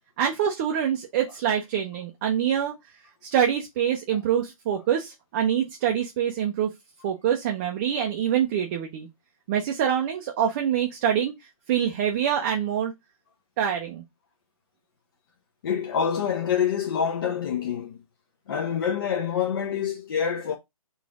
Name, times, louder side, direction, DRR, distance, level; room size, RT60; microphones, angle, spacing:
voice 1, 0.2-2.7 3.2-6.7 7.0-9.1 9.5-11.3 11.7-12.9 13.6-14.0, right 9 dB, 20° right, 0.5 m, -25 dB
voice 2, 15.6-18.0 18.5-20.6, left 7 dB, 40° left, 0.6 m, -26 dB
4.2 x 2.5 x 4.6 m
figure-of-eight pair, 145°, 18 cm